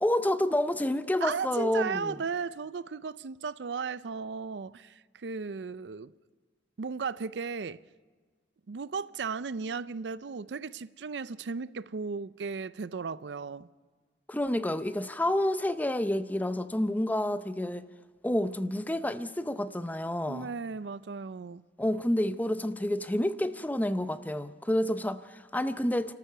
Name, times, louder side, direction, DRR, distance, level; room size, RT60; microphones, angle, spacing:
voice 1, 0.0-2.2 14.3-17.8 18.2-20.5 21.8-26.1, left 1 dB, 10° left, 0.6 m, -29 dB
voice 2, 1.2-6.1 6.8-7.8 8.7-13.7 20.3-21.7, right 5 dB, 75° right, 0.5 m, -35 dB
30.0 x 13.5 x 6.8 m
head